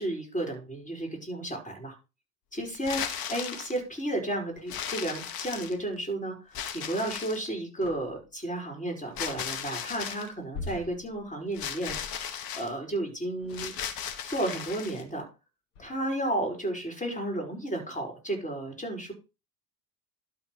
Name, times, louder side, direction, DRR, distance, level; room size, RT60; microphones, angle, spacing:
voice 1, 0.0-1.9 2.5-12.0 12.5-13.7 14.2-15.2 15.8-19.1, right 1 dB, 15° left, 2 dB, 4.8 m, -33 dB
sound 1, 2.7-3.8 4.7-6.0 6.5-7.5 9.2-10.3 11.5-12.7 13.5-15.0, left 8 dB, 45° left, 1.4 m, -36 dB
sound 2, 7.8-8.3 10.5-12.5 13.4-13.9 14.7-14.9 15.7-16.2, left 4 dB, 70° left, 2.3 m, -43 dB
12.0 x 4.2 x 4.7 m, 0.28 s
hypercardioid pair, 75°, 48 cm